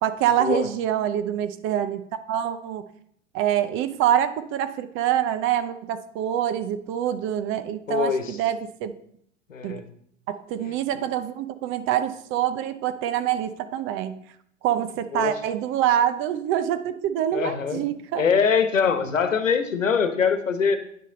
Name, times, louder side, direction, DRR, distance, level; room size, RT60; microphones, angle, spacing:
voice 1, 0.0-2.8 3.3-8.9 9.6-9.8 10.3-14.2 14.6-18.3, right 10 dB, 35° right, 11 dB, 0.7 m, -25 dB
voice 2, 7.9-8.4 9.5-9.8 15.1-15.3 17.3-17.8 18.1-20.8, left 6 dB, 90° left, 9 dB, 1.2 m, -23 dB
9.7 x 6.4 x 3.9 m, 0.67 s
hypercardioid pair, 105°, 37 cm